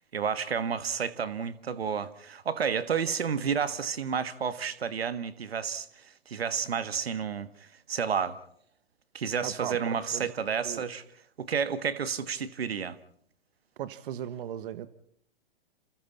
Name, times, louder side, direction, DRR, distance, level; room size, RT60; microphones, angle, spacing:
voice 1, 0.1-5.9 6.3-7.5 7.9-8.4 9.1-11.0 11.4-13.0, right 6 dB, 80° right, 1.7 m, -30 dB
voice 2, 9.4-10.4 10.6-10.9 13.8-14.9, right 10 dB, 60° right, 1.4 m, -37 dB
28.5 x 28.0 x 4.2 m
hypercardioid pair, 115°, 30 cm